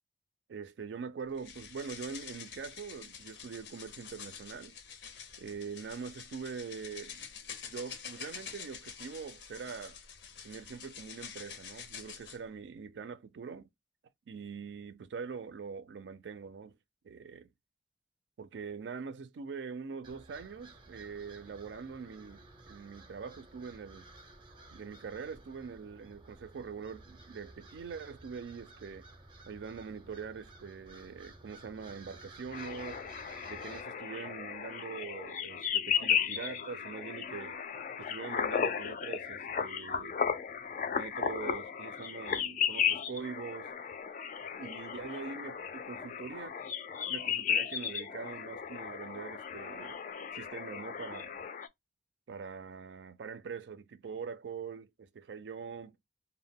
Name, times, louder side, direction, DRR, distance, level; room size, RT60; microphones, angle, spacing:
voice 1, 0.5-4.7 5.4-7.3 7.7-10.0 10.4-13.7 14.3-16.8 17.0-17.5 18.4-24.1 24.7-29.1 29.5-33.0 33.5-37.6 38.0-40.2 40.9-43.7 44.6-46.6 47.1-50.0 50.3-51.4 52.3-55.9, right 5 dB, 90° right, 0.4 m, -43 dB
sound 1, 1.4-12.4, left 7 dB, 85° left, 0.6 m, -47 dB
sound 2, 20.0-33.8, right 2 dB, 30° right, 0.4 m, -54 dB
sound 3, 32.5-51.7, left 7 dB, 45° left, 0.3 m, -35 dB
2.1 x 2.1 x 3.4 m
head